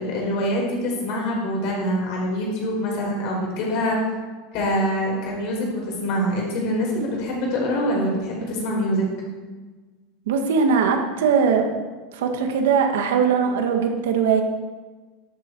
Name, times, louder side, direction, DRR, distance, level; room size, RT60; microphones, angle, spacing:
voice 1, 0.0-4.0 4.5-9.0, equal, 45° left, -2 dB, 4.9 m, -25 dB
voice 2, 10.3-11.7 12.1-14.4, right 6 dB, 85° right, 4 dB, 1.9 m, -20 dB
13.0 x 12.0 x 4.8 m, 1.3 s
supercardioid pair, 175°, 0 cm